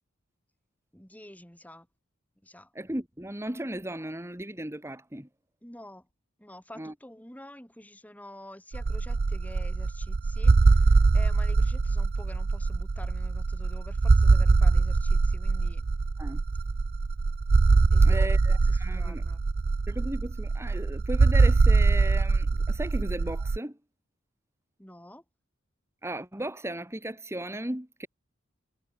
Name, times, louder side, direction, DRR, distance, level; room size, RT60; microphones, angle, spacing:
voice 1, 0.9-1.9 2.4-2.7 5.6-6.1 6.4-15.8 17.9-19.4 24.8-25.2, left 1 dB, 10° left, 3.3 m, -48 dB
voice 2, 2.7-5.3 6.8-6.9 16.2-16.4 18.0-19.2 19.9-23.8 26.0-28.1, right 1 dB, 15° right, 2.1 m, -36 dB
sound 1, 8.7-23.6, right 3 dB, 50° right, 0.5 m, -23 dB
head